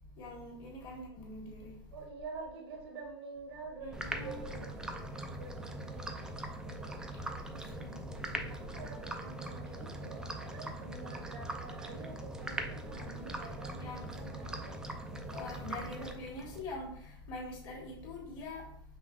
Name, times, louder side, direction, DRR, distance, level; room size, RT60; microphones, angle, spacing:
voice 1, 0.2-1.7 3.8-4.4 7.8-8.0 12.9-13.3 13.8-14.0 15.3-16.9 17.3-18.6, left 2 dB, 35° left, -2 dB, 1.7 m, -44 dB
voice 2, 1.9-4.9 5.4-6.2 8.5-13.9 14.1-14.8, right 4 dB, 85° right, 1 dB, 1.0 m, -48 dB
sound 1, 3.9-16.6, right 1 dB, 5° right, 0.3 m, -41 dB
5.4 x 3.4 x 2.3 m, 0.68 s
supercardioid pair, 140°, 13 cm